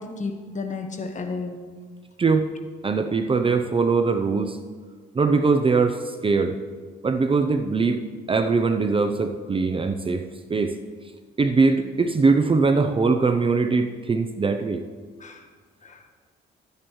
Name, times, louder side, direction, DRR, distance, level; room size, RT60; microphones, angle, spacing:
voice 1, 0.0-1.6 15.2-15.5 15.8-16.1, left 4 dB, 40° left, 5 dB, 1.3 m, -32 dB
voice 2, 2.8-4.6 5.1-6.0 6.2-6.6 7.0-8.0 8.3-10.8 11.4-14.8, right 4 dB, 25° right, 7 dB, 0.6 m, -21 dB
13.0 x 9.5 x 3.1 m, 1.5 s
cardioid pair, 90°, 20 cm